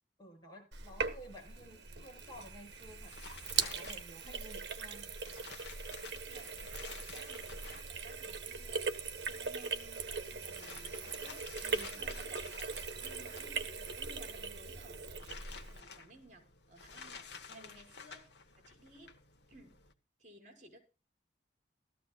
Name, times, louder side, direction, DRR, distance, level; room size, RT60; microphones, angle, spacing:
voice 1, 0.2-3.1 3.6-5.1 11.6-12.0 17.5-17.8, equal, 25° left, 8.0 m, -53 dB
Sink (filling or washing), 0.7-15.8, right 5 dB, 75° right, 1.5 m, -40 dB
sound 1, 2.6-19.9, left 5 dB, 75° left, 1.5 m, -53 dB
voice 2, 6.1-11.5 11.9-18.3 18.6-19.2 19.5-19.8 20.2-20.8, right 1 dB, 45° right, 4.9 m, -58 dB
18.0 x 14.0 x 2.4 m
head